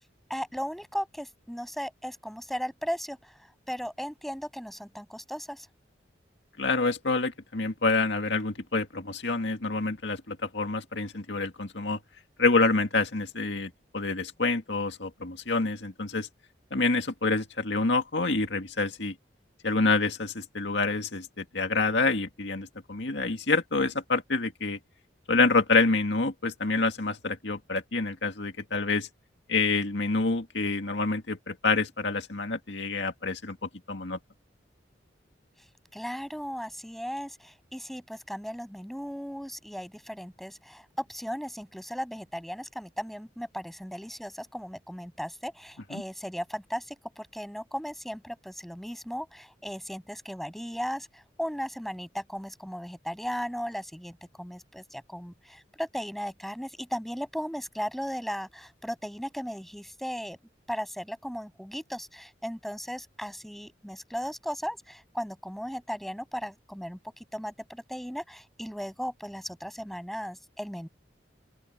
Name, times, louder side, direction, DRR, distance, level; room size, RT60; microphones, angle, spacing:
voice 1, 0.3-3.3 3.7-5.7 35.9-60.4 60.7-70.9, equal, ahead, 7.9 m, -36 dB
voice 2, 6.6-12.0 12.4-16.3 16.7-19.1 19.6-24.8 25.3-29.1 29.5-33.6 33.9-34.2 45.9-46.0, left 3 dB, 75° left, 2.1 m, -27 dB
open air
head